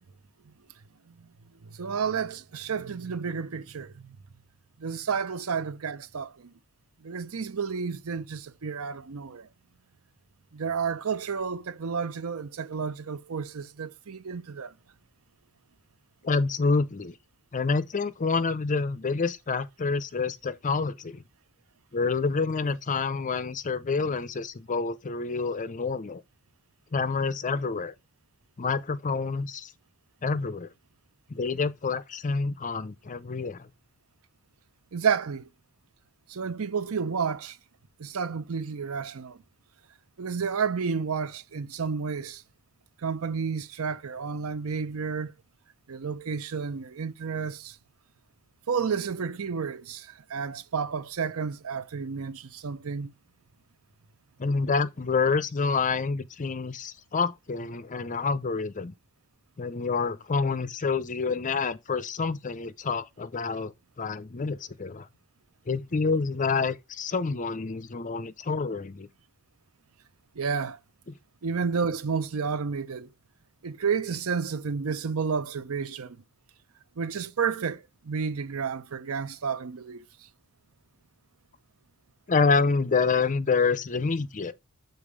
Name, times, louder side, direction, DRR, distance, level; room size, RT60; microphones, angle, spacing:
voice 1, 1.8-4.0 4.8-6.5 7.0-9.5 10.5-14.7 34.9-35.5 36.3-37.6 38.0-39.4 40.2-42.4 43.0-45.3 45.9-47.8 48.7-53.1 70.4-70.8 71.4-73.1 73.6-76.2 77.0-80.0, right 6 dB, 75° right, 0.6 m, -31 dB
voice 2, 16.2-17.2 17.5-21.2 21.9-26.2 26.9-27.9 28.6-29.7 30.2-30.7 31.3-33.7 54.4-58.9 59.6-65.1 65.7-69.1 71.1-71.2 82.3-84.5, left 4 dB, 35° left, 0.6 m, -28 dB
7.1 x 3.9 x 4.9 m
head